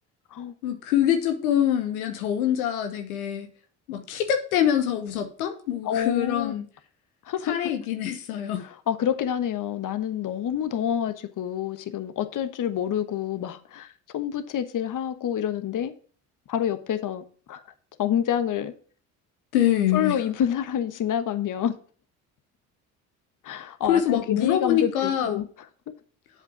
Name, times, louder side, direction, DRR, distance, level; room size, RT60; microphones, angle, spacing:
voice 1, 0.6-3.5 3.9-6.6 7.4-8.6 19.5-20.2 23.9-25.5, left 10 dB, 80° left, 1.1 m, -25 dB
voice 2, 5.8-6.5 7.2-7.6 8.6-15.9 16.5-17.6 18.0-18.7 19.9-21.8 23.4-25.4, left 9 dB, 45° left, 1.2 m, -28 dB
7.9 x 5.1 x 5.9 m
hypercardioid pair, 60°, 43 cm